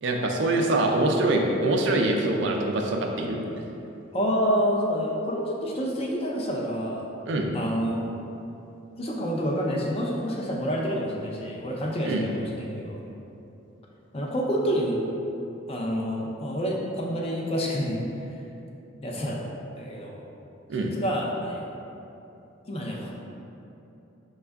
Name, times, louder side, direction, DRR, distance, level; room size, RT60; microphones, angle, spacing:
voice 1, 0.0-3.4 7.3-7.5 12.0-12.2 20.7-20.9, right 2 dB, 60° right, 1 dB, 0.4 m, -24 dB
voice 2, 4.1-7.0 7.5-8.0 9.0-13.0 14.1-15.0 15.7-18.0 19.0-19.4 19.8-20.2 20.8-21.6 22.7-23.1, equal, 30° left, -2 dB, 0.4 m, -28 dB
5.2 x 2.3 x 3.4 m, 2.8 s
head